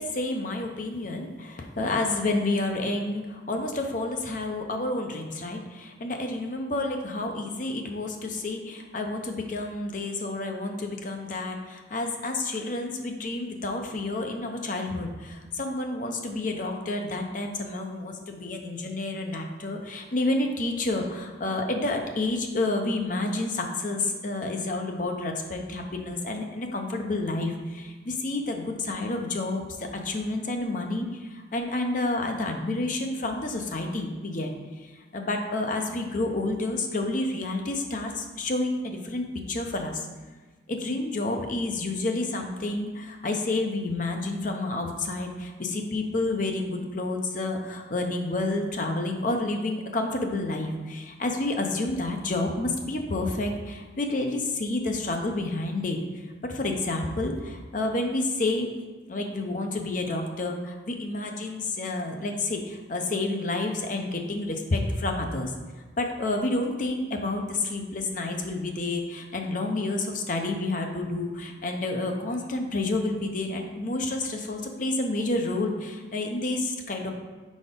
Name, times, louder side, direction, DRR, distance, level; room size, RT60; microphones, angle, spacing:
voice 1, 0.0-34.5 34.8-40.0 40.7-56.0 56.4-58.7 59.1-65.5 66.0-77.1, left 2 dB, 40° left, 3 dB, 0.6 m, -29 dB
4.7 x 4.2 x 5.1 m, 1.3 s
head